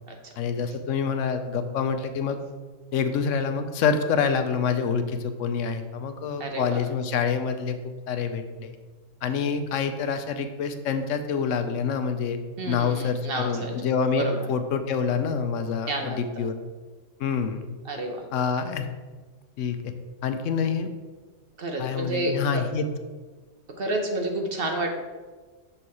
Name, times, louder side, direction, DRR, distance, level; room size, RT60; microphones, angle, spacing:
voice 1, 0.4-2.4 2.9-7.8 8.1-8.8 9.2-12.4 12.7-16.5 17.2-17.6 18.3-18.8 19.6-19.9 20.2-20.9 21.8-22.9, left 6 dB, 75° left, 8 dB, 1.0 m, -26 dB
voice 2, 6.4-6.8 12.6-13.7 14.1-14.5 15.9-16.4 17.8-18.2 21.6-22.6 23.8-24.9, right 2 dB, 55° right, 4 dB, 0.9 m, -30 dB
6.5 x 4.3 x 4.7 m, 1.4 s
omnidirectional pair, 1.3 m